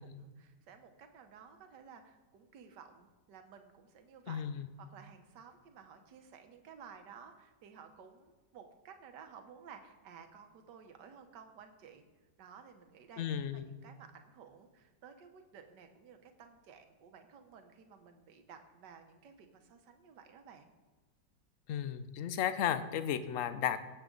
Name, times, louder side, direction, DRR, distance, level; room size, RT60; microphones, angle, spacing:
voice 1, 0.0-12.0 12.4-20.7, right 6 dB, 70° right, 6 dB, 1.7 m, -55 dB
voice 2, 4.3-4.7 13.2-13.7 21.7-23.9, left 9 dB, 60° left, 11 dB, 0.9 m, -34 dB
18.5 x 7.8 x 3.9 m, 1.3 s
omnidirectional pair, 1.9 m